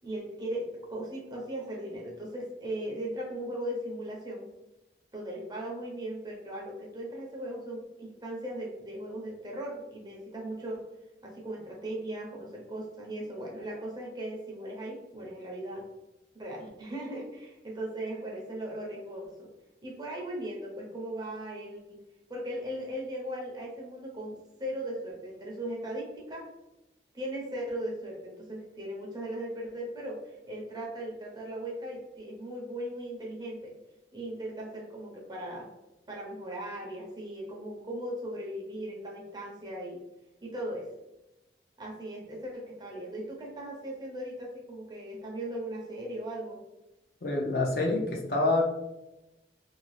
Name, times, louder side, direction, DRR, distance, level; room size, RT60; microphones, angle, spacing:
voice 1, 0.0-4.5 5.1-10.9 11.2-15.9 16.3-19.5 19.8-22.0 22.3-26.5 27.1-33.7 34.1-35.7 36.1-40.0 40.4-40.9 41.8-46.6, right 1 dB, 25° right, -2 dB, 0.6 m, -38 dB
voice 2, 47.2-48.6, left 2 dB, 55° left, 0 dB, 0.6 m, -27 dB
2.6 x 2.3 x 3.1 m, 0.96 s
head